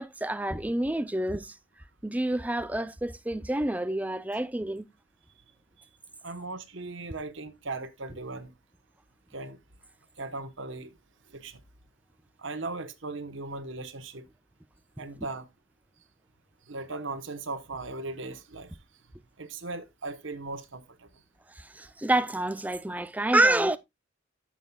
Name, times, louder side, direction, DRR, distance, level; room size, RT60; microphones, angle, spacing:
voice 1, 0.0-1.6 2.0-4.9 21.5-23.8, right 1 dB, 5° right, 0.4 m, -28 dB
voice 2, 6.2-8.5 9.3-9.6 10.2-11.0 11.3-11.6 12.4-14.3 15.0-15.5 16.7-18.8 19.4-21.1, right 3 dB, 65° right, 1.1 m, -38 dB
13.5 x 7.3 x 2.3 m
head